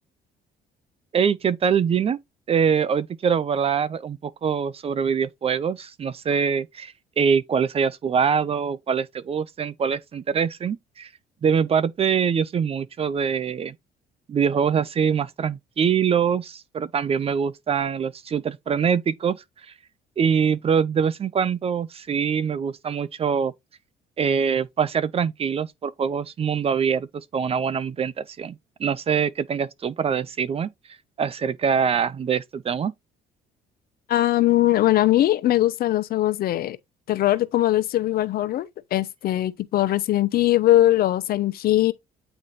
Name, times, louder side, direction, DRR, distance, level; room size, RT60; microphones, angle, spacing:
voice 1, 1.1-2.2 2.5-11.1 11.4-13.7 14.3-19.4 20.2-23.5 24.2-30.7 31.2-32.9, right 7 dB, 35° right, 0.6 m, -24 dB
voice 2, 34.1-36.8 37.1-41.9, left 14 dB, 65° left, 0.8 m, -21 dB
8.9 x 3.3 x 4.1 m
cardioid pair, 110°, 17 cm